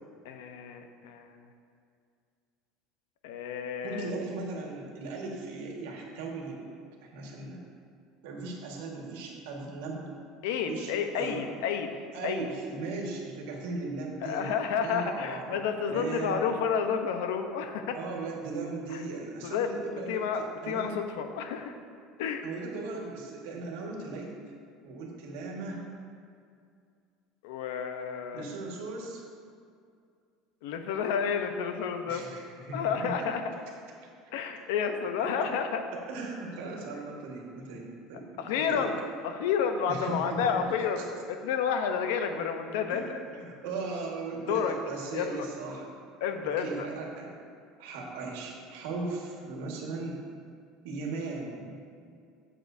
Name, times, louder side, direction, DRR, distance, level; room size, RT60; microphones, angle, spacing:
voice 1, 0.2-1.4 3.2-4.1 10.4-12.0 12.2-12.5 14.2-18.0 18.9-19.0 19.4-19.7 20.1-21.7 22.2-22.4 27.4-28.4 30.6-32.2 32.7-33.4 34.3-35.8 38.4-43.2 44.5-44.7 45.1-45.5 46.2-46.9, left 7 dB, 80° left, 7 dB, 0.7 m, -30 dB
voice 2, 3.8-6.6 7.0-7.6 8.2-10.0 10.7-11.4 12.1-16.5 17.9-20.3 20.6-20.9 22.4-24.3 24.8-25.8 28.3-29.2 32.0-33.3 35.2-35.5 35.9-38.9 39.9-40.6 41.0-41.1 42.9-45.9 46.6-47.3 47.8-50.2 50.8-51.8, right 3 dB, 80° right, -1 dB, 1.6 m, -38 dB
11.5 x 7.5 x 2.7 m, 2.3 s
cardioid pair, 170°, 0 cm